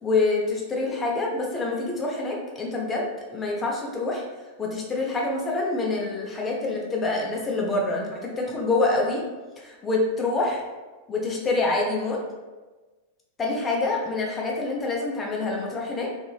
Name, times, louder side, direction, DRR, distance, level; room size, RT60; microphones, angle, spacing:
voice 1, 0.0-4.2 4.6-9.2 9.6-10.6 11.1-12.2 13.4-16.1, left 3 dB, 20° left, -1 dB, 0.8 m, -26 dB
3.9 x 2.9 x 2.3 m, 1.2 s
figure-of-eight pair, 90°, 0 cm